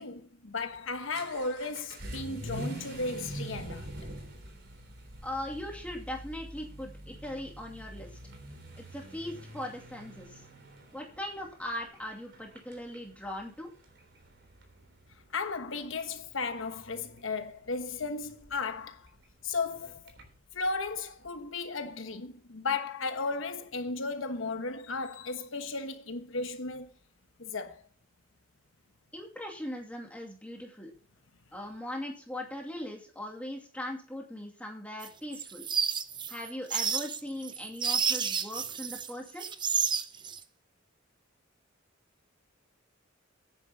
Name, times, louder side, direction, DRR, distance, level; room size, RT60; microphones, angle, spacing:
voice 1, 0.0-3.9 15.3-19.1 19.4-20.0 20.5-26.9 27.4-27.9, left 3 dB, 65° left, 1.2 m, -35 dB
Vehicle / Accelerating revving vroom, 0.6-20.4, right 1 dB, 60° right, 3.7 m, -46 dB
voice 2, 5.2-8.1 8.8-10.4 10.9-13.7 29.1-30.9 31.5-35.7 36.3-39.5, left 1 dB, 5° left, 2.4 m, -39 dB
sound 1, 35.0-39.1 39.4-40.4, right 6 dB, 20° right, 0.6 m, -30 dB
11.0 x 9.8 x 4.1 m
head